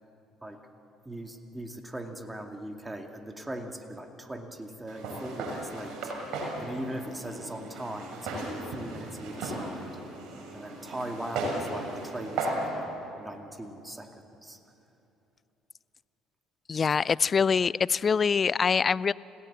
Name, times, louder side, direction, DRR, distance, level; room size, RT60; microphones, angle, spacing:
voice 1, 1.1-6.1 6.6-10.0 10.5-14.1 14.4-14.6 16.7-16.8, right 1 dB, 15° right, 4 dB, 2.4 m, -40 dB
Walk footsteps, 4.9-12.7, right 2 dB, 60° right, 6.2 m, -36 dB
voice 2, 16.7-19.1, left 6 dB, 40° left, 21 dB, 0.4 m, -24 dB
29.5 x 17.0 x 7.3 m, 3.0 s
hypercardioid pair, 60°, 0 cm